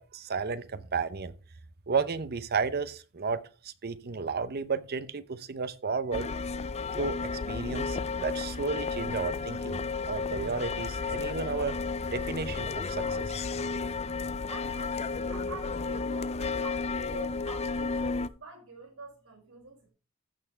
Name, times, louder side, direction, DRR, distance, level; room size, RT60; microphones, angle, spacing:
voice 1, 0.0-1.3 1.9-6.3 6.9-9.8 10.1-11.8 12.1-13.4, right 5 dB, 45° right, 0.8 m, -33 dB
sound 1, 6.1-18.3, left 4 dB, 30° left, 0.4 m, -32 dB
voice 2, 14.5-19.9, right 5 dB, 65° right, 5.8 m, -47 dB
15.0 x 5.9 x 3.3 m
head